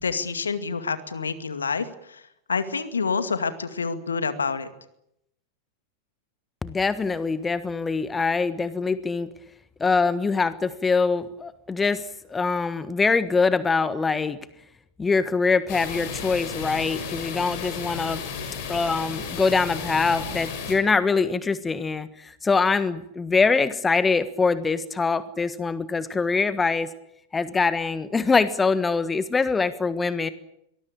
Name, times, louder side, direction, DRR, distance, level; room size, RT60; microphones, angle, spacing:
voice 1, 0.0-2.2 2.5-4.7, left 5 dB, 75° left, 10 dB, 2.2 m, -27 dB
voice 2, 6.6-9.3 9.8-14.4 15.0-18.2 18.7-26.9 27.3-30.3, left 4 dB, 15° left, 14 dB, 1.4 m, -23 dB
sound 1, 15.7-20.7, left 6 dB, 50° left, 6.2 m, -33 dB
23.5 x 20.0 x 8.9 m, 0.79 s
figure-of-eight pair, 90°, 0 cm